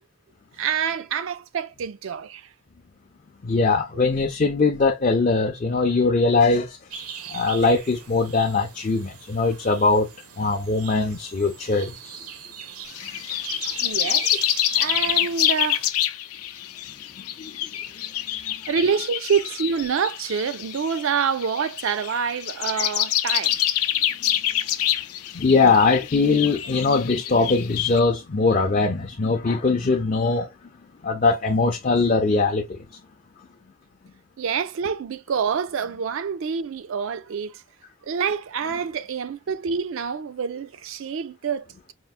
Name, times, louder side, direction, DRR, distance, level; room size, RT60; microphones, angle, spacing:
voice 1, 0.6-2.5 13.8-14.3 14.7-15.8 18.7-23.6 34.4-37.6 38.0-41.9, right 6 dB, 60° right, 0.4 m, -27 dB
voice 2, 3.4-6.8 7.3-10.1 10.4-12.2 17.4-17.5 25.3-30.5 31.0-32.8, left 3 dB, 35° left, 0.4 m, -21 dB
sound 1, 6.9-15.9, right 8 dB, 85° right, 0.8 m, -39 dB
sound 2, 12.9-28.0, left 12 dB, 85° left, 0.5 m, -26 dB
4.4 x 2.0 x 2.4 m
head